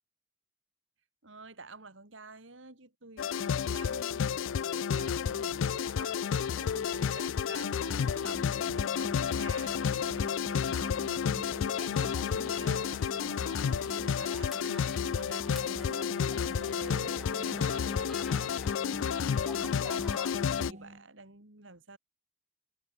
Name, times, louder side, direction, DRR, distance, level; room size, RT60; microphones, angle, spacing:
voice 1, 1.2-22.0, right 3 dB, 75° right, 3.8 m, -49 dB
sound 1, 3.2-20.7, left 7 dB, 85° left, 0.4 m, -31 dB
sound 2, 7.5-21.1, right 1 dB, 40° right, 2.2 m, -48 dB
sound 3, 11.5-20.3, equal, ahead, 0.6 m, -51 dB
head